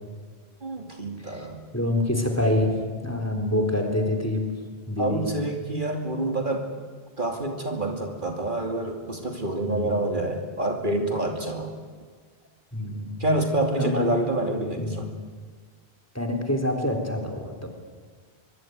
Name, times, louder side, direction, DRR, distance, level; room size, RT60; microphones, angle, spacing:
voice 1, 0.6-1.6 5.0-6.7 7.2-11.7 13.2-15.2, right 1 dB, 50° right, 4 dB, 2.9 m, -27 dB
voice 2, 1.7-2.7 3.0-4.4 4.9-5.2 9.6-10.0 12.7-13.5 13.8-14.1 14.8-15.0 16.1-17.7, left 1 dB, 15° left, 5 dB, 4.0 m, -26 dB
24.0 x 24.0 x 9.5 m, 1.5 s
omnidirectional pair, 1.1 m